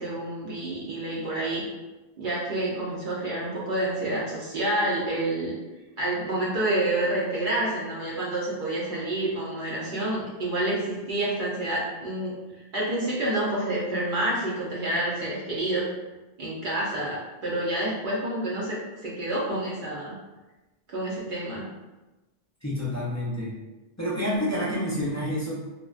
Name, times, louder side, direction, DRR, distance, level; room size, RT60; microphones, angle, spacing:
voice 1, 0.0-1.6 2.2-5.5 6.0-12.3 12.7-15.9 16.4-20.2 20.9-21.7, right 1 dB, 60° right, -6 dB, 0.7 m, -28 dB
voice 2, 22.6-23.5 24.0-25.5, equal, 25° left, -8 dB, 0.3 m, -28 dB
2.4 x 2.1 x 2.3 m, 1.1 s
omnidirectional pair, 1.0 m